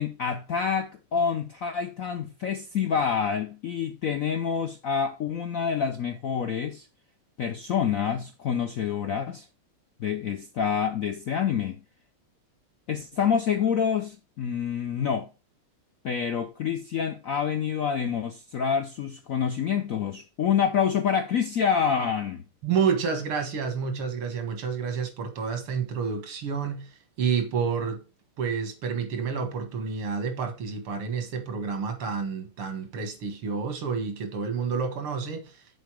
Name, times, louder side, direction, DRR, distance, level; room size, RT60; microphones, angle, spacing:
voice 1, 0.0-6.9 7.4-9.5 10.0-11.8 12.9-15.3 16.0-22.4, left 7 dB, 70° left, 0.8 m, -27 dB
voice 2, 22.6-28.0 28.4-35.6, right 6 dB, 85° right, 2.6 m, -29 dB
6.8 x 4.7 x 6.2 m
omnidirectional pair, 2.3 m